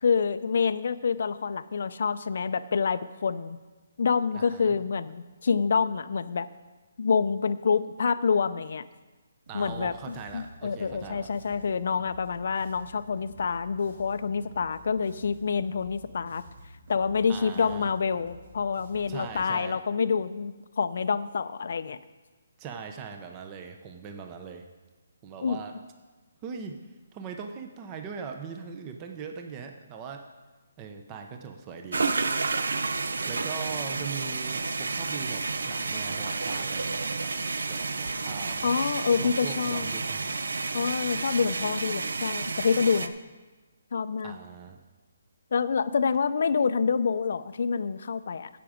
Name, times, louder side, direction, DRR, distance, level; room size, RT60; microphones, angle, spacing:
voice 1, 0.0-3.6 4.0-6.5 7.0-8.8 9.5-9.9 10.3-16.4 16.9-22.0 25.4-25.6 38.6-39.9 40.7-43.1 43.9-44.4 45.5-48.5, left 5 dB, 55° left, 14 dB, 0.5 m, -27 dB
voice 2, 4.3-4.8 9.5-11.3 17.3-17.9 19.1-19.8 22.6-24.7 25.2-25.7 26.4-26.8 27.1-30.3 30.8-32.1 33.3-38.7 39.1-40.4 44.2-44.8, right 6 dB, 15° right, 5 dB, 0.7 m, -40 dB
Bass guitar, 9.5-19.3, left 1 dB, 65° right, 3.6 m, -50 dB
sound 1, 31.9-43.1, right 4 dB, 85° right, 0.6 m, -30 dB
15.5 x 6.0 x 5.0 m, 1.2 s
hypercardioid pair, 170°, 0 cm